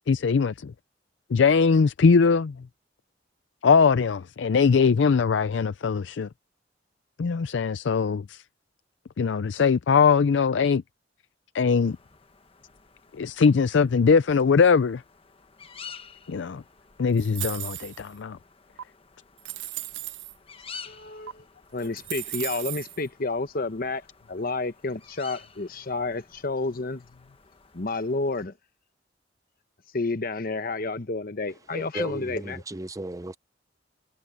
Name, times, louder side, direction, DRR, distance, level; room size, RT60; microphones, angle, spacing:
voice 1, 0.1-0.7 1.3-2.6 3.6-6.3 7.2-8.4 9.2-10.8 11.5-12.0 13.1-15.0 16.3-16.6 17.0-18.4, left 5 dB, 70° left, 0.4 m, -21 dB
sound 1, 11.8-28.4, left 5 dB, 30° left, 1.2 m, -50 dB
Cultery Drop, 17.2-18.1 18.8-18.9 19.4-20.3 21.3-21.4 21.8-23.0, right 16 dB, 75° right, 0.5 m, -35 dB
voice 2, 20.9-21.4 21.7-27.0 27.7-28.5 29.9-32.6, left 3 dB, 50° left, 1.1 m, -30 dB
voice 3, 31.7-33.4, right 1 dB, 20° right, 0.6 m, -35 dB
head